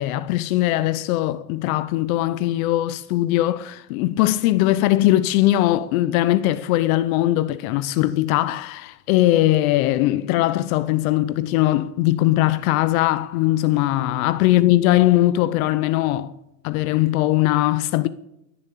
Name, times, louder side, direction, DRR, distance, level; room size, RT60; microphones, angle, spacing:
voice 1, 0.0-16.3 16.6-18.1, left 15 dB, 55° left, 0.7 m, -20 dB
18.5 x 7.2 x 8.4 m
supercardioid pair, 140°, 50 cm